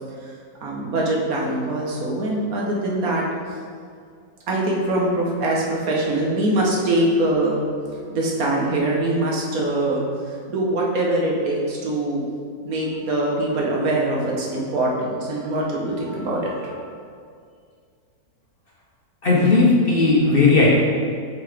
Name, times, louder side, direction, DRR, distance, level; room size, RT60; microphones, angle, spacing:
voice 1, 0.6-3.2 4.5-7.6 8.1-12.2 12.6-16.9, right 1 dB, 70° right, -3 dB, 1.5 m, -23 dB
voice 2, 19.2-20.7, left 3 dB, 45° left, -4 dB, 0.9 m, -16 dB
8.0 x 4.8 x 3.5 m, 2.2 s
omnidirectional pair, 1.6 m